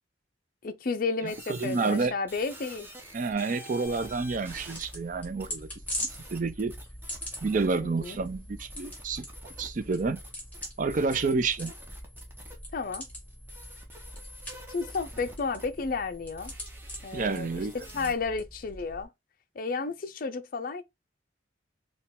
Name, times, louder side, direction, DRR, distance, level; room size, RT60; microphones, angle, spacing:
voice 1, 0.6-2.9 7.8-8.2 12.7-13.0 14.7-16.5 17.0-17.5 17.9-19.1 19.6-20.8, left 4 dB, 45° left, 0.4 m, -32 dB
voice 2, 1.2-2.1 3.1-5.7 6.0-6.7 7.4-10.2 10.8-11.7 17.1-18.1, right 4 dB, 40° right, 0.4 m, -29 dB
sound 1, 1.3-18.1, equal, 10° right, 0.8 m, -49 dB
sound 2, 3.8-19.0, equal, 10° left, 1.7 m, -42 dB
4.4 x 2.3 x 3.5 m
head